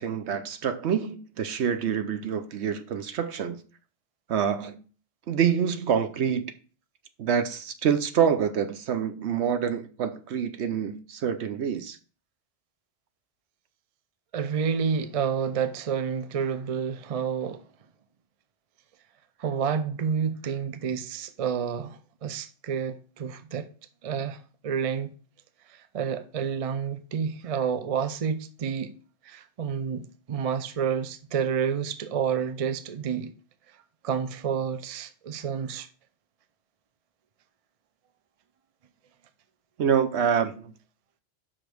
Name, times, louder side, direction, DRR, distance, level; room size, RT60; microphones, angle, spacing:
voice 1, 0.0-3.6 4.3-4.8 5.3-6.5 7.2-12.0 39.8-40.7, right 7 dB, 65° right, 0.9 m, -26 dB
voice 2, 14.3-17.6 19.4-23.7 24.0-25.1 25.7-28.9 29.2-33.3 34.0-35.9, right 7 dB, 40° right, 0.5 m, -29 dB
5.8 x 5.1 x 6.1 m
omnidirectional pair, 1.3 m